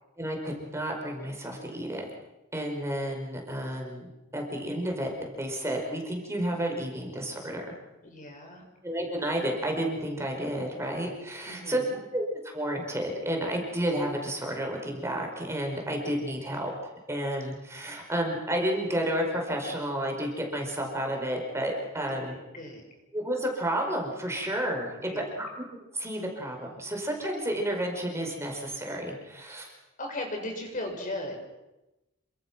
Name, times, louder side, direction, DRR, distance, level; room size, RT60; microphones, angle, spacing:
voice 1, 0.2-2.0 2.5-5.1 5.4-7.7 8.8-11.8 12.1-22.4 23.1-25.1 25.4-25.5 25.9-29.7, right 1 dB, 15° right, 1 dB, 5.0 m, -31 dB
voice 2, 8.0-8.6 11.4-12.0 22.1-22.8 25.1-25.4 30.0-31.4, left 1 dB, 40° left, 2 dB, 6.4 m, -37 dB
28.5 x 25.0 x 6.1 m, 0.99 s
head